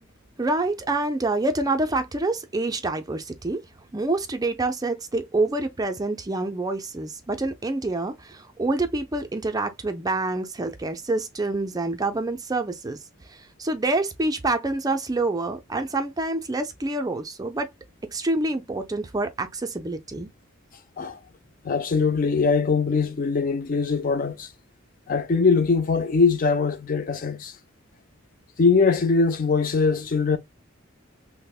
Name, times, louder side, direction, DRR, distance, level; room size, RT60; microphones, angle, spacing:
voice 1, 0.4-3.6 3.9-13.0 13.3-17.7 18.1-20.3, right 2 dB, 20° right, 0.4 m, -27 dB
voice 2, 21.6-24.5 25.1-27.6 28.6-30.4, left 4 dB, 40° left, 0.4 m, -22 dB
5.6 x 2.1 x 2.3 m
head